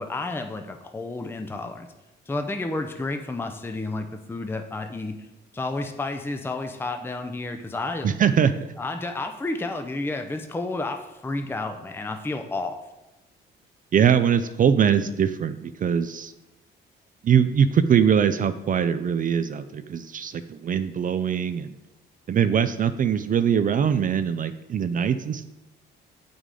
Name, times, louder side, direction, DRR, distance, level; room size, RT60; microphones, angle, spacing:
voice 1, 0.0-1.9 2.3-5.2 5.5-8.1 8.8-12.8, left 2 dB, 10° left, 6 dB, 0.5 m, -31 dB
voice 2, 8.0-8.7 13.9-16.3 17.2-21.7 22.3-25.5, right 8 dB, 45° right, 11 dB, 0.4 m, -22 dB
8.1 x 5.1 x 3.7 m, 0.99 s
cardioid pair, 90°, 20 cm